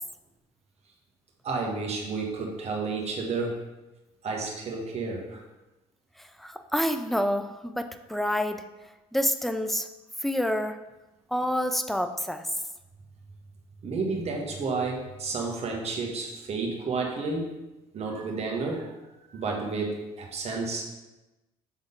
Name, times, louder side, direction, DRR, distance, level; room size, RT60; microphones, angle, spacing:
voice 1, 1.4-3.6 4.2-5.4 13.8-17.5 17.9-18.9 19.3-20.9, right 3 dB, 45° right, -1 dB, 1.5 m, -31 dB
voice 2, 6.2-8.6 9.1-9.9 10.2-10.8 11.3-12.5, equal, ahead, 8 dB, 0.5 m, -28 dB
7.1 x 3.8 x 3.8 m, 1.0 s
supercardioid pair, 70°, 15 cm